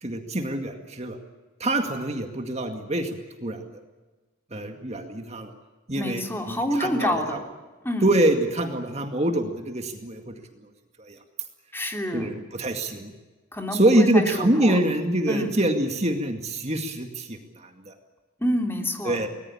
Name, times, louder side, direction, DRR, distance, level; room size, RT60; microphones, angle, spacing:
voice 1, 0.0-1.2 1.6-3.6 4.5-5.5 5.9-7.4 8.0-10.4 11.0-11.2 12.1-13.1 13.7-18.0 19.0-19.3, right 1 dB, 35° right, 5 dB, 2.2 m, -25 dB
voice 2, 5.9-7.4 7.8-8.1 11.7-12.3 13.5-14.8 15.3-15.5 18.4-19.2, left 1 dB, 10° left, 3 dB, 3.1 m, -28 dB
24.0 x 19.5 x 8.7 m, 1.2 s
head